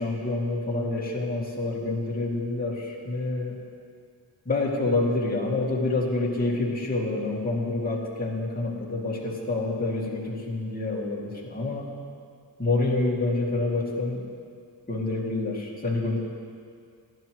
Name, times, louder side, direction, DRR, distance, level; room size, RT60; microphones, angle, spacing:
voice 1, 0.0-3.6 4.5-11.9 12.6-14.2 14.9-16.2, left 2 dB, 20° left, -6 dB, 2.3 m, -27 dB
15.0 x 11.5 x 3.1 m, 2.2 s
wide cardioid pair, 105°, 44 cm